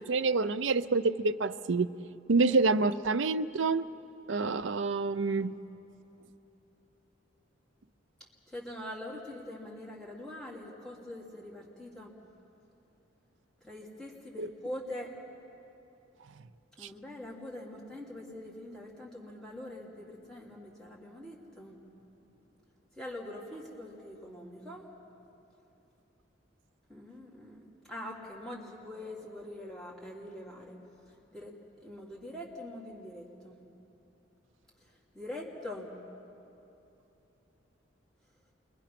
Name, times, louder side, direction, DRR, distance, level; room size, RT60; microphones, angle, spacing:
voice 1, 0.0-1.9 2.3-3.8 4.3-5.6 14.4-14.5, right 3 dB, 70° right, 11 dB, 0.6 m, -27 dB
voice 2, 8.5-12.2 13.6-15.2 16.8-21.8 22.9-24.9 26.9-30.8 31.0-31.6 31.8-33.6 34.8-36.0, left 1 dB, 5° left, -4 dB, 3.0 m, -44 dB
28.5 x 22.5 x 5.9 m, 3.0 s
head